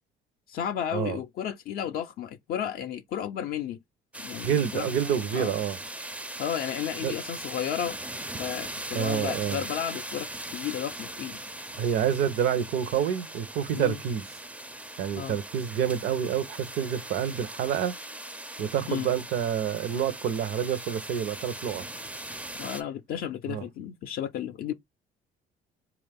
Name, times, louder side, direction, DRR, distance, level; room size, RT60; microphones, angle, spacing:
voice 1, 0.5-3.8 4.2-5.6 6.4-8.0 8.4-10.3 10.5-11.4 13.7-14.0 15.2-15.4 18.9-19.1 22.6-24.7, left 9 dB, 60° left, 0.4 m, -33 dB
sound 1, 4.1-22.8, right 1 dB, 10° right, 0.4 m, -40 dB
voice 2, 4.4-5.8 7.0-7.1 8.9-9.6 11.8-14.3 15.0-17.9 18.6-21.8 23.5-23.7, right 9 dB, 75° right, 0.6 m, -28 dB
4.0 x 2.4 x 3.4 m
cardioid pair, 110°, 17 cm